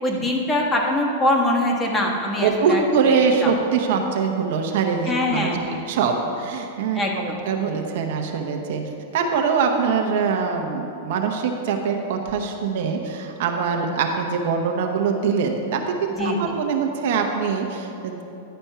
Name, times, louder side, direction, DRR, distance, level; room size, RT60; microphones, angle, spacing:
voice 1, 0.0-2.8 3.4-3.5 5.1-5.8 6.9-7.4 16.2-16.6, left 1 dB, 20° left, -1 dB, 1.3 m, -23 dB
voice 2, 2.4-5.6 5.9-8.8 9.1-18.2, right 5 dB, 65° right, 3 dB, 0.9 m, -23 dB
10.5 x 4.4 x 5.6 m, 2.8 s
hypercardioid pair, 120°, 0 cm